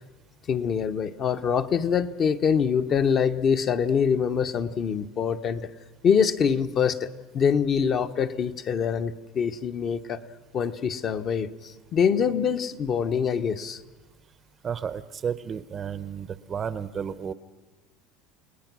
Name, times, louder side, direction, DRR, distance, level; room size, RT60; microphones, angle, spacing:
voice 1, 0.5-5.7 6.0-7.1 7.3-10.2 10.5-13.8, left 7 dB, 35° left, 9 dB, 0.8 m, -24 dB
voice 2, 14.6-17.3, right 7 dB, 25° right, 16 dB, 0.7 m, -32 dB
29.5 x 19.0 x 6.1 m, 1.2 s
cardioid pair, 150°, 0 cm